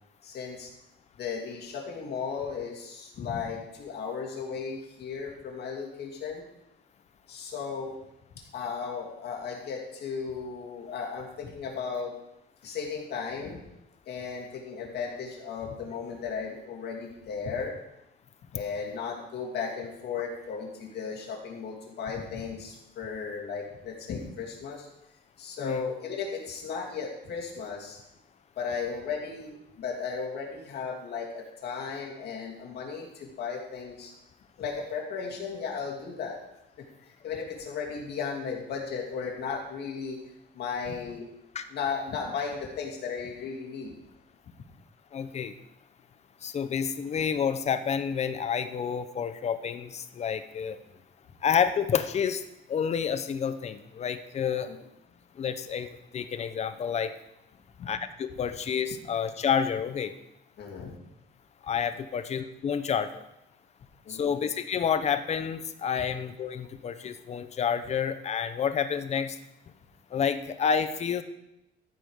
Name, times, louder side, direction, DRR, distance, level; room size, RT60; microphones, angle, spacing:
voice 1, 0.2-0.7 1.2-6.4 7.3-8.0 8.5-12.2 12.6-13.6 14.1-17.8 18.5-24.9 25.4-28.0 28.6-34.1 34.6-36.4 37.0-40.2 40.5-41.2 41.7-43.9 54.7-54.8 57.8-57.9 60.6-61.0 64.0-64.3, left 5 dB, 60° left, -2 dB, 2.6 m, -35 dB
voice 2, 45.1-45.5 46.4-50.8 51.4-52.4 52.7-54.7 55.4-55.9 56.1-57.1 57.9-60.1 61.6-63.2 64.1-69.4 70.1-71.2, left 7 dB, 35° left, 10 dB, 0.7 m, -29 dB
13.5 x 5.2 x 6.4 m, 0.86 s
cardioid pair, 155°, 19 cm